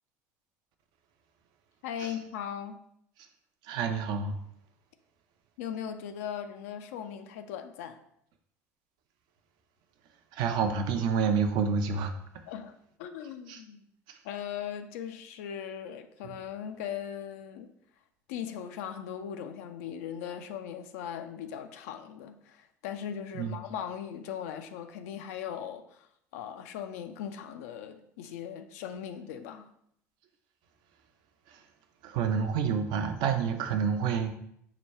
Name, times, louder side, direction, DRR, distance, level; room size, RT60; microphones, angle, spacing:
voice 1, 1.8-2.8 5.6-8.0 12.5-12.7 13.0-13.8 14.2-17.7 18.3-26.1 26.3-29.7, left 9 dB, 70° left, 0.4 m, -39 dB
voice 2, 3.6-4.4 10.3-12.4 13.5-13.6 14.1-14.2 16.2-16.4 23.3-23.6 31.5-31.6 32.0-34.3, right 6 dB, 60° right, 0.6 m, -29 dB
4.9 x 2.2 x 4.3 m
hypercardioid pair, 70°, 8 cm